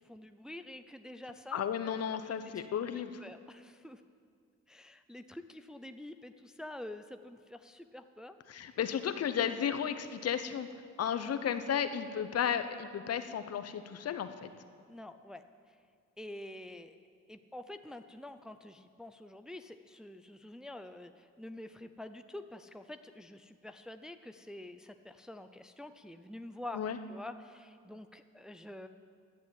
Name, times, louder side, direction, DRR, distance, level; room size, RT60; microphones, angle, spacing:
voice 1, 0.0-1.6 2.6-2.7 3.2-4.0 4.7-8.4 8.7-8.8 11.2-11.3 14.9-15.8 16.2-16.9 17.3-26.8 27.1-28.9, left 1 dB, ahead, 8 dB, 0.5 m, -47 dB
voice 2, 1.5-3.2 8.5-10.7 11.0-14.5 26.7-27.0, left 8 dB, 55° left, 10 dB, 0.9 m, -33 dB
11.5 x 9.3 x 8.3 m, 2.1 s
cardioid pair, 90°, 30 cm